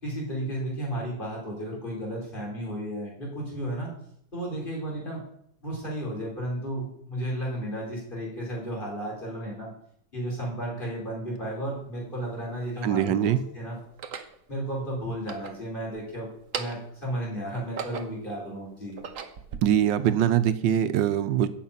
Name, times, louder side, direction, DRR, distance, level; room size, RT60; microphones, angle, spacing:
voice 1, 0.0-3.9 4.3-5.2 5.6-9.7 10.1-13.8 14.5-19.0, right 1 dB, 25° left, -3 dB, 4.7 m, -33 dB
sound 1, 11.4-11.5 12.3-13.1 13.9-14.4 15.1-16.0 16.4-17.0 17.5-18.3 18.8-19.6, right 6 dB, 55° right, 1.1 m, -38 dB
voice 2, 12.8-13.4 19.6-21.5, right 10 dB, 90° right, 11 dB, 1.5 m, -23 dB
10.5 x 6.7 x 8.8 m, 0.71 s
omnidirectional pair, 1.9 m